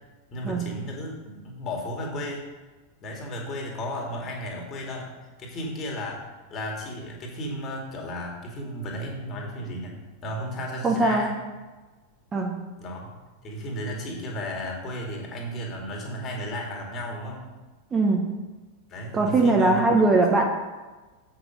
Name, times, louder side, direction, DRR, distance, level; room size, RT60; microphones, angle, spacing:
voice 1, 0.3-2.5 3.0-5.1 5.4-6.2 6.5-9.9 10.2-11.4 12.8-13.2 13.4-17.4 18.9-19.8, equal, 30° left, -1 dB, 2.2 m, -34 dB
voice 2, 10.8-11.3 12.3-12.6 17.9-18.3 19.1-20.5, right 2 dB, 20° right, 1 dB, 1.1 m, -21 dB
7.9 x 6.0 x 5.1 m, 1.2 s
figure-of-eight pair, 90°, 0 cm